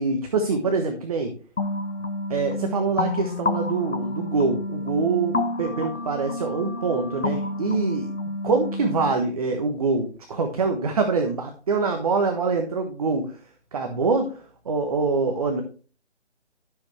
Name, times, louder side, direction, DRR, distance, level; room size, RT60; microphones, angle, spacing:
voice 1, 0.0-1.3 2.3-8.1 8.4-13.4 13.7-15.6, right 4 dB, 30° right, 5 dB, 1.1 m, -25 dB
sound 1, 1.6-9.1, left 2 dB, 80° left, 1.4 m, -29 dB
13.0 x 7.0 x 3.2 m, 0.39 s
figure-of-eight pair, 155°, 35 cm